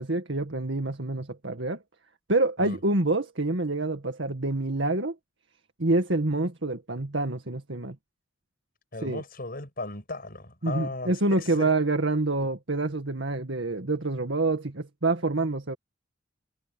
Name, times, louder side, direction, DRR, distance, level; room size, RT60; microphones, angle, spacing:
voice 1, 0.0-1.8 2.3-5.2 5.8-8.0 9.0-9.2 10.6-15.8, right 2 dB, 90° right, 2.0 m, -27 dB
voice 2, 8.9-11.7 12.4-12.5, left 2 dB, 55° left, 7.7 m, -37 dB
head